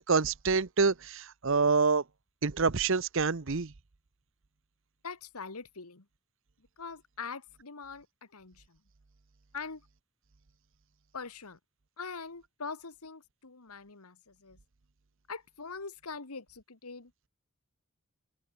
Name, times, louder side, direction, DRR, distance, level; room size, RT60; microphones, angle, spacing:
voice 1, 0.0-2.0 2.4-3.7, right 4 dB, 60° right, 0.8 m, -27 dB
voice 2, 5.0-6.0 6.8-8.1 8.3-8.8 9.5-9.8 11.1-11.6 12.0-14.6 15.3-17.1, left 5 dB, 85° left, 1.8 m, -43 dB
open air
head